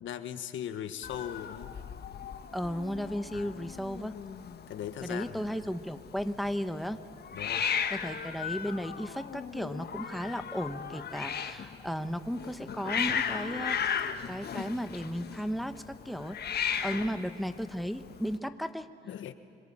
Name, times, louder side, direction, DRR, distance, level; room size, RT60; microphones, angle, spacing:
voice 1, 0.0-1.8 3.3-3.6 4.7-5.7 7.3-7.6 16.9-17.1 19.0-19.3, left 9 dB, 75° left, 9 dB, 1.5 m, -39 dB
Hiss, 1.0-18.4, left 7 dB, 55° left, 1.5 m, -36 dB
voice 2, 2.5-4.1 5.0-7.0 7.9-14.0 14.3-18.9, equal, ahead, 9 dB, 1.2 m, -35 dB
26.0 x 22.0 x 8.8 m, 2.2 s
cardioid pair, 90°, 20 cm